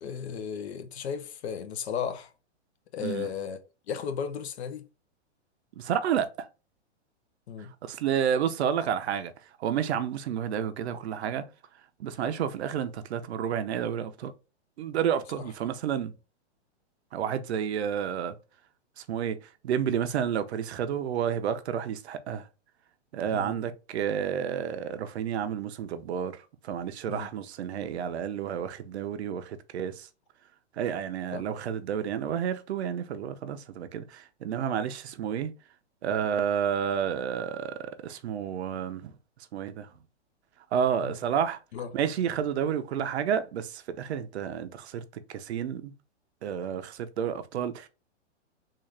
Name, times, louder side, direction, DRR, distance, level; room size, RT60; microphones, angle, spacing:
voice 1, 0.0-2.3 2.9-3.6 3.9-4.9 7.5-7.7 23.3-23.6 27.1-27.3 31.3-31.5 41.0-41.2 41.7-41.9, left 7 dB, 65° left, 0.8 m, -35 dB
voice 2, 3.0-3.3 5.8-6.5 7.6-9.3 9.6-11.4 12.0-14.3 14.8-16.1 17.1-18.3 19.0-19.4 19.6-22.5 23.1-30.1 30.7-35.5 36.0-39.1 39.5-39.9 40.7-41.6 41.9-45.0 45.3-45.9 46.4-47.9, right 8 dB, 65° right, 0.6 m, -30 dB
3.8 x 2.5 x 3.2 m
hypercardioid pair, 145°, 35 cm